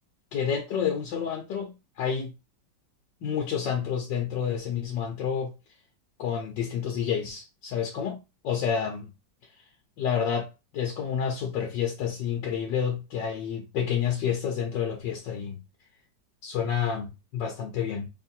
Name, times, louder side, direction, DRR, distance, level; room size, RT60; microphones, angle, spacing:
voice 1, 0.3-2.3 3.2-5.5 6.2-8.2 8.4-9.1 10.0-15.6 16.4-18.1, left 7 dB, 75° left, 1.6 m, -29 dB
3.6 x 2.7 x 4.3 m
omnidirectional pair, 2.0 m